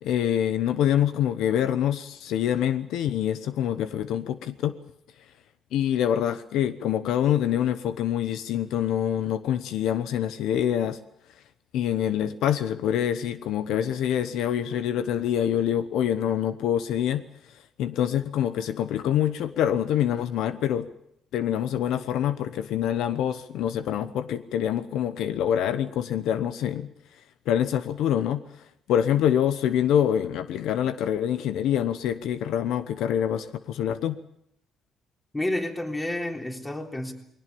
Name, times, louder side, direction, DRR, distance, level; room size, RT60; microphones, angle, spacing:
voice 1, 0.0-4.7 5.7-11.0 11.7-17.2 17.8-20.9 21.3-26.9 27.5-28.4 28.9-34.2, left 10 dB, 85° left, 12 dB, 1.0 m, -25 dB
voice 2, 35.3-37.1, left 1 dB, 15° left, 3 dB, 3.7 m, -30 dB
21.0 x 18.0 x 8.7 m, 0.75 s
cardioid pair, 90°, 0 cm